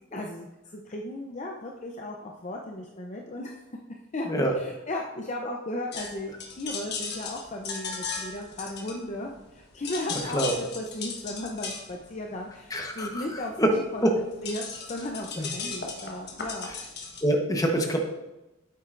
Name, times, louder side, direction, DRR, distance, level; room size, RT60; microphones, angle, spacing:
voice 1, 0.1-0.5 0.7-3.6 4.1-16.7, left 1 dB, 35° left, 1 dB, 0.7 m, -36 dB
sound 1, 5.9-9.5 9.8-17.2, left 4 dB, 60° left, 1.2 m, -37 dB
voice 2, 12.7-13.7 14.0-14.1 15.4-15.5 17.2-18.1, right 1 dB, 20° left, 2 dB, 1.1 m, -25 dB
9.2 x 7.7 x 2.5 m, 1.0 s
head